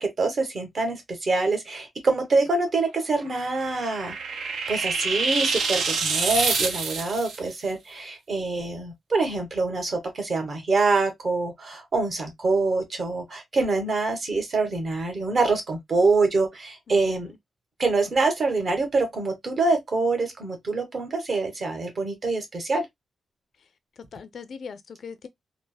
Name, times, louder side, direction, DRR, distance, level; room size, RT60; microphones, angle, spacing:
voice 1, 0.0-17.3 17.8-22.9, right 3 dB, 45° right, 1.0 m, -25 dB
sound 1, 3.2-7.4, right 4 dB, 80° right, 0.6 m, -27 dB
voice 2, 16.9-17.4 24.1-25.3, left 6 dB, 60° left, 0.4 m, -40 dB
3.3 x 2.0 x 2.2 m
wide cardioid pair, 130°, 0 cm